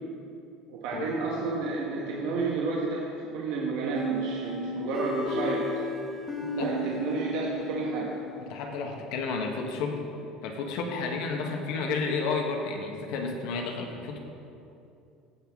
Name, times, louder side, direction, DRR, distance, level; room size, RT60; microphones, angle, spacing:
voice 1, 0.7-3.0 3.3-5.6 6.5-8.1, right 3 dB, 70° right, -3 dB, 1.2 m, -31 dB
sound 1, 3.9-8.6, equal, 10° left, 1.1 m, -33 dB
voice 2, 8.4-10.0 10.4-14.2, left 4 dB, 65° left, 2 dB, 1.1 m, -31 dB
15.0 x 5.6 x 3.6 m, 2.6 s
cardioid pair, 160°, 0 cm